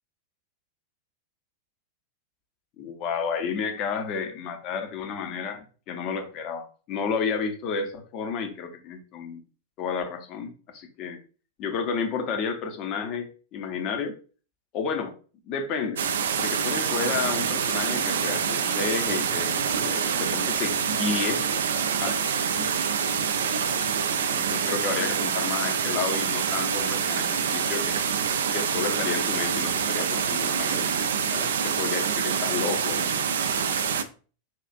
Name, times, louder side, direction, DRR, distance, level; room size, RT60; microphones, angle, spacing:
voice 1, 2.8-9.4 9.8-11.2 11.6-14.1 14.7-15.1 15.5-16.0 16.4-21.4 22.0-22.2 22.5-23.0 24.2-28.0 28.5-31.0 31.3-33.7, left 5 dB, 40° left, 5 dB, 0.7 m, -31 dB
sound 1, 16.0-34.0, right 7 dB, 65° right, 0.3 m, -26 dB
4.3 x 2.4 x 2.5 m, 0.38 s
figure-of-eight pair, 90°, 0 cm